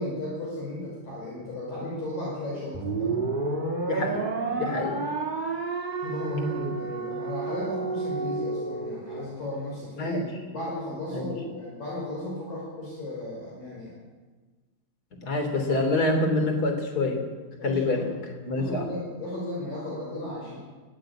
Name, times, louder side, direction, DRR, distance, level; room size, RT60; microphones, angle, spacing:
voice 1, 0.0-3.4 6.0-13.9 17.6-20.6, left 1 dB, 55° left, -4 dB, 7.1 m, -35 dB
sound 1, 2.7-9.2, right 3 dB, 50° right, 0.5 m, -30 dB
voice 2, 3.8-4.3 4.5-5.0 10.0-10.2 11.1-11.2 15.2-17.2 17.6-18.0 18.4-18.9, left 2 dB, 25° left, 4 dB, 3.2 m, -26 dB
21.0 x 15.5 x 8.8 m, 1.3 s
omnidirectional pair, 4.8 m